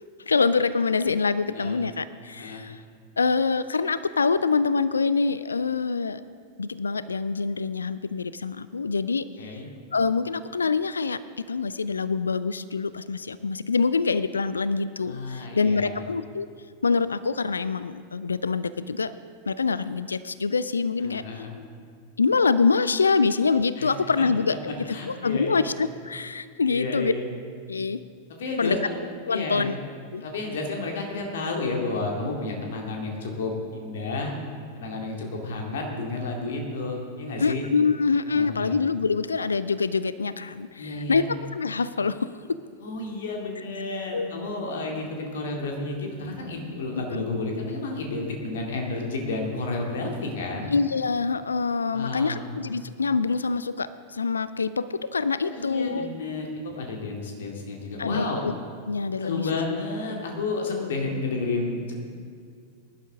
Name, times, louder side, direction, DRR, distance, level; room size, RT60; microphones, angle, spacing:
voice 1, 0.3-2.8 3.2-6.2 6.6-9.3 9.9-11.2 11.5-16.5 16.8-19.1 19.5-21.2 22.2-27.1 27.7-28.0 28.6-28.8 29.3-29.7 30.1-30.2 37.4-42.3 44.1-44.3 47.1-47.2 50.7-56.1 58.0-58.5 58.9-59.5, left 4 dB, 75° left, 16 dB, 0.4 m, -25 dB
voice 2, 9.4-9.7 15.0-16.0 21.0-21.5 23.8-23.9 24.9-25.6 26.7-27.3 28.3-29.0 29.3-29.8 30.2-34.3 34.7-37.6 38.3-38.8 40.8-41.3 42.8-50.7 51.9-52.5 55.5-58.4 59.2-61.9, left 3 dB, 60° left, 1 dB, 2.3 m, -31 dB
19.5 x 11.5 x 3.7 m, 2.1 s
figure-of-eight pair, 90°, 0 cm